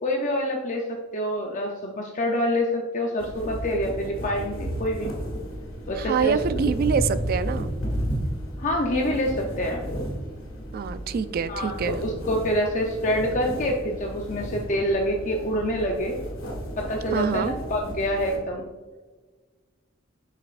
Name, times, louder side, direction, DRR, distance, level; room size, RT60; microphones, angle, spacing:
voice 1, 0.0-5.1 5.9-6.4 8.6-9.9 11.5-16.2 16.8-18.7, equal, 40° left, 0 dB, 0.6 m, -26 dB
sound 1, 3.2-18.4, equal, 85° left, 1.7 m, -33 dB
voice 2, 5.9-7.7 10.7-12.0 17.1-17.6, right 6 dB, 50° right, 13 dB, 0.3 m, -25 dB
6.7 x 5.7 x 2.4 m, 1.3 s
head